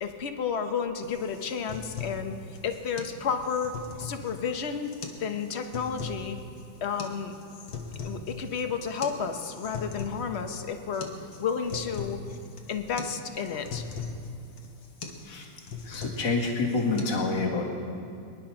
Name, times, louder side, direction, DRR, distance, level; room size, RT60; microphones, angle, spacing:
voice 1, 0.0-2.3 2.6-4.9 5.2-6.4 6.8-7.3 8.0-11.1 11.4-12.2 12.7-13.8 15.9-16.0, left 6 dB, 45° left, 7 dB, 0.9 m, -31 dB
sound 1, 1.0-17.0, left 4 dB, 85° left, 2.1 m, -40 dB
voice 2, 15.9-17.6, left 3 dB, 65° left, -2 dB, 2.5 m, -27 dB
23.0 x 10.5 x 5.9 m, 2.5 s
omnidirectional pair, 2.1 m